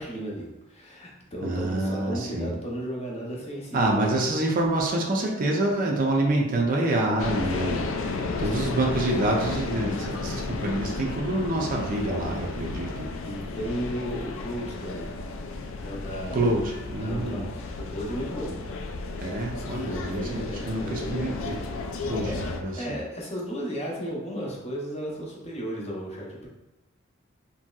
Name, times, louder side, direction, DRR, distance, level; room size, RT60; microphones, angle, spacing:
voice 1, 0.0-4.1 8.0-8.1 8.4-9.3 13.2-15.1 15.8-16.5 16.9-17.6 17.9-18.6 19.8-21.4 22.2-26.5, equal, 30° left, -3 dB, 0.7 m, -35 dB
voice 2, 1.4-2.5 3.7-7.9 8.4-13.1 16.3-17.5 19.2-21.6 22.1-23.0, right 2 dB, 40° right, 0 dB, 0.4 m, -27 dB
sound 1, 7.2-22.6, left 3 dB, 65° left, 0.3 m, -33 dB
3.0 x 2.6 x 2.3 m, 0.98 s
head